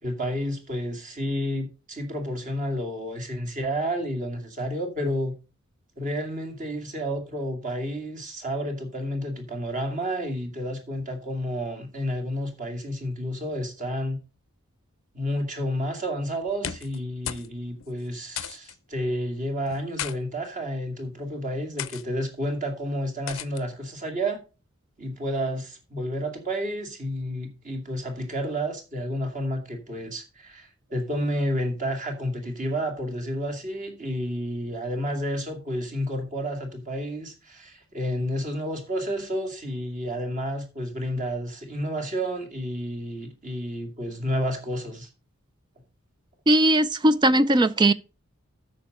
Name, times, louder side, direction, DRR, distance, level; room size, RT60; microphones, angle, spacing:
voice 1, 0.0-5.4 6.0-14.2 15.1-24.4 25.0-45.1, equal, 35° right, 2.3 m, -30 dB
sound 1, 16.5-17.0 17.2-17.5 17.8-17.9 18.4-18.7 19.7-20.2 20.9-21.2 21.8-22.0 23.3-23.6, left 10 dB, 70° left, 0.6 m, -34 dB
voice 2, 46.5-47.9, right 1 dB, 20° right, 0.4 m, -19 dB
9.1 x 6.3 x 5.4 m
head